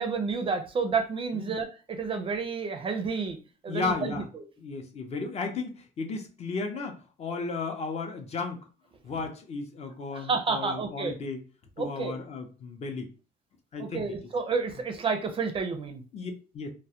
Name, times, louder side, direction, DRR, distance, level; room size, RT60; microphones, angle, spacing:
voice 1, 0.0-3.4 3.6-4.4 10.1-11.1 11.8-12.2 13.8-16.0, right 4 dB, 30° right, 6 dB, 0.4 m, -30 dB
voice 2, 3.7-4.3 4.6-8.6 9.0-11.4 11.8-13.1 13.7-14.1 16.1-16.7, left 4 dB, 40° left, 4 dB, 0.5 m, -34 dB
2.2 x 2.0 x 2.7 m, 0.35 s
cardioid pair, 110°, 17 cm